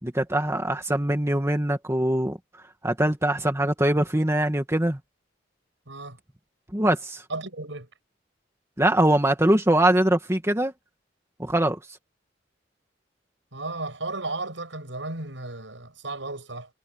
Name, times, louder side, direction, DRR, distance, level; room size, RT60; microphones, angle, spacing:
voice 1, 0.0-2.4 2.8-5.0 6.7-7.2 8.8-10.7 11.4-11.8, right 1 dB, 15° right, 2.1 m, -22 dB
voice 2, 5.9-6.2 7.3-7.9 13.5-16.7, right 2 dB, 75° right, 7.9 m, -34 dB
head